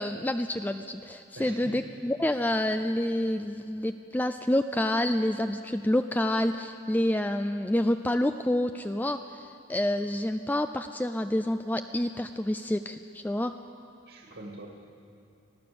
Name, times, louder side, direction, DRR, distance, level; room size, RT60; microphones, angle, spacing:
voice 1, 0.0-13.5, left 1 dB, 10° left, 8 dB, 0.4 m, -28 dB
voice 2, 1.4-1.8 14.1-14.7, right 2 dB, 60° right, 0 dB, 2.3 m, -43 dB
25.5 x 16.5 x 7.0 m, 2.7 s
head